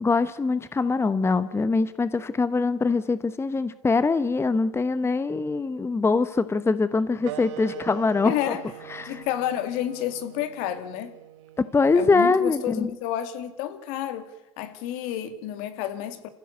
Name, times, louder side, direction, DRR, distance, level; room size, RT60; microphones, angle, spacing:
voice 1, 0.0-8.6 8.9-9.2 11.6-12.9, left 4 dB, 15° left, 1.0 m, -23 dB
sound 1, 7.2-12.4, right 12 dB, 75° right, 1.4 m, -42 dB
voice 2, 8.2-8.6 9.0-11.2 11.9-14.3 14.6-16.3, left 11 dB, 65° left, 2.4 m, -30 dB
27.5 x 15.5 x 8.1 m
hypercardioid pair, 85°, 15 cm